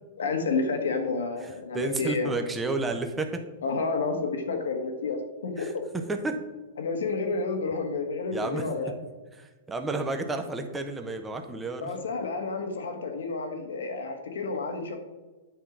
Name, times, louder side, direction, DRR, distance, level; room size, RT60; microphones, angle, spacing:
voice 1, 0.2-2.3 3.6-5.8 6.8-8.9 11.8-15.0, left 4 dB, 90° left, 5 dB, 1.5 m, -30 dB
voice 2, 1.4-3.4 5.6-6.4 8.3-8.7 9.4-11.9, right 3 dB, 10° right, 5 dB, 0.8 m, -31 dB
9.2 x 3.7 x 6.0 m, 1.2 s
hypercardioid pair, 145°, 0 cm